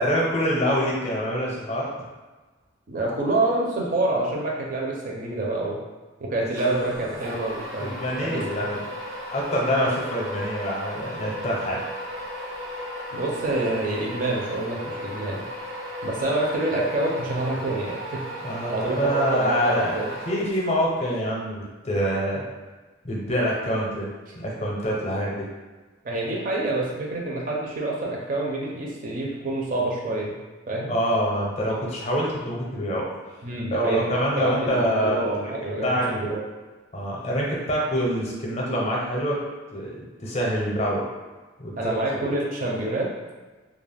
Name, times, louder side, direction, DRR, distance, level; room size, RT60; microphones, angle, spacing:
voice 1, 0.0-1.9 6.6-7.3 7.8-8.8 9.3-11.8 18.4-20.0 20.3-22.4 23.0-24.1 24.3-25.5 30.9-33.1 33.7-35.3 35.8-36.1 36.9-39.4 39.7-41.1 41.6-42.0, equal, 30° left, -4 dB, 0.5 m, -25 dB
voice 2, 2.9-5.8 6.2-8.0 8.2-8.7 13.1-15.4 16.0-18.2 18.7-20.1 26.0-30.4 30.7-30.9 33.4-34.0 34.4-36.4 41.8-43.1, right 2 dB, 40° right, -3 dB, 0.5 m, -27 dB
sound 1, 6.6-20.8, equal, 80° right, 1.1 m, -35 dB
2.3 x 2.0 x 3.3 m, 1.3 s
head